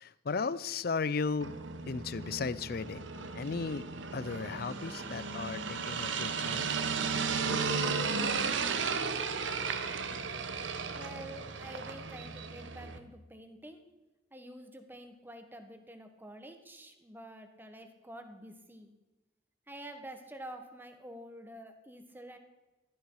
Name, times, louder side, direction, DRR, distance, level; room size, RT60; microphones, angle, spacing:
voice 1, 0.0-1.5 1.9-3.1 3.3-3.9 4.1-6.7, left 4 dB, 55° left, 17 dB, 0.5 m, -35 dB
sound 1, 1.4-13.0, right 5 dB, 85° right, 1.1 m, -35 dB
voice 2, 10.9-13.8 14.3-18.9 19.7-22.4, right 1 dB, 10° right, 6 dB, 1.4 m, -48 dB
15.5 x 12.5 x 4.8 m, 1.1 s
head